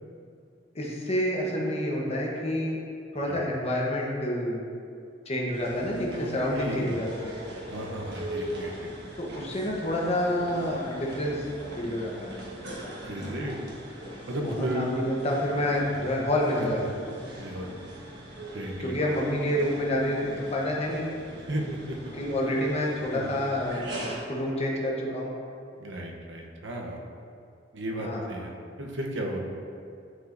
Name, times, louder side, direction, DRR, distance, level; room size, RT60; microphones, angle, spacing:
voice 1, 0.7-2.8 3.1-4.6 5.2-7.4 9.2-11.4 11.8-12.3 14.4-16.9 18.8-21.1 22.2-25.3 28.0-28.2, left 1 dB, 35° left, -2 dB, 1.0 m, -28 dB
sound 1, 5.5-24.2, equal, 65° right, 1.3 m, -41 dB
voice 2, 6.5-7.1 7.7-8.9 13.0-13.6 14.3-14.9 15.9-16.0 17.4-17.7 18.5-18.9 21.5-22.1 23.1-23.3 25.8-27.0 27.7-29.4, right 1 dB, 85° right, 0 dB, 0.9 m, -34 dB
9.9 x 4.8 x 2.6 m, 2.4 s
head